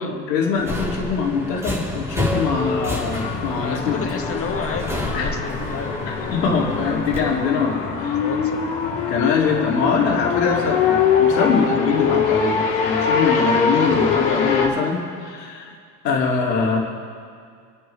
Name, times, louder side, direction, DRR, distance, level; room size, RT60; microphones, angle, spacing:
voice 1, 0.0-4.0 5.1-5.3 6.1-8.2 9.1-15.7 16.0-16.8, left 5 dB, 80° left, -2 dB, 2.8 m, -23 dB
Subway metro underground, 0.6-7.2, left 1 dB, 5° right, 3.8 m, -29 dB
sound 1, 2.6-14.7, left 6 dB, 60° left, 3.3 m, -23 dB
voice 2, 3.5-6.1 7.8-8.7, left 5 dB, 30° left, 3 dB, 1.9 m, -32 dB
28.5 x 9.5 x 3.4 m, 2.2 s
hypercardioid pair, 85°, 48 cm